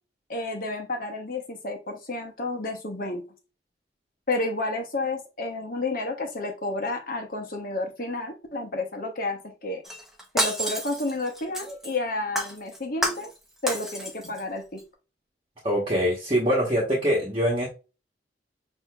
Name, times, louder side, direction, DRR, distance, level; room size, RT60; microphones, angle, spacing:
voice 1, 0.3-3.2 4.3-9.8 10.3-13.3 13.6-14.8, left 2 dB, 50° left, 3 dB, 1.0 m, -31 dB
Shatter, 9.8-12.0 12.4-13.4 13.7-14.4 14.8-14.9, right 1 dB, ahead, 0.8 m, -30 dB
voice 2, 15.6-17.7, equal, 30° right, -4 dB, 1.2 m, -23 dB
6.3 x 2.7 x 2.4 m, 0.30 s
head